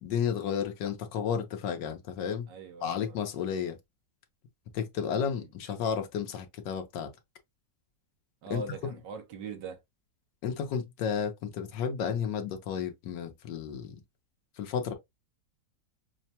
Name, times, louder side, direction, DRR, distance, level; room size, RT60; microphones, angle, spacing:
voice 1, 0.0-2.5 2.8-3.8 4.7-7.1 8.5-8.6 10.4-14.0 14.6-14.9, left 7 dB, 90° left, 1.4 m, -32 dB
voice 2, 2.5-3.2 5.0-5.5 8.4-9.8, right 4 dB, 90° right, 1.5 m, -42 dB
5.6 x 2.1 x 2.8 m
omnidirectional pair, 1.8 m